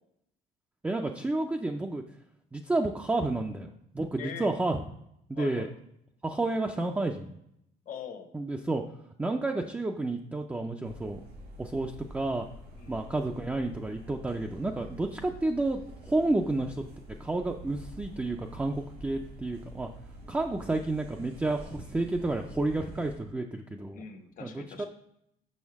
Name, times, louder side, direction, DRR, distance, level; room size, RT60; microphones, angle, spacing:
voice 1, 0.8-2.0 2.5-4.8 5.3-5.7 6.2-7.4 8.3-8.8 9.2-11.2 11.6-12.5 12.9-16.8 17.2-19.9 20.3-24.0 24.4-24.6, right 2 dB, 10° right, 2 dB, 0.4 m, -30 dB
voice 2, 4.2-4.5 5.3-5.7 7.9-8.3 12.8-13.0 20.5-20.7 23.9-24.9, left 7 dB, 55° left, 6 dB, 1.0 m, -43 dB
sound 1, 10.8-23.2, right 1 dB, 85° right, 2.5 m, -47 dB
6.4 x 5.3 x 3.5 m, 0.76 s
cardioid pair, 110°, 17 cm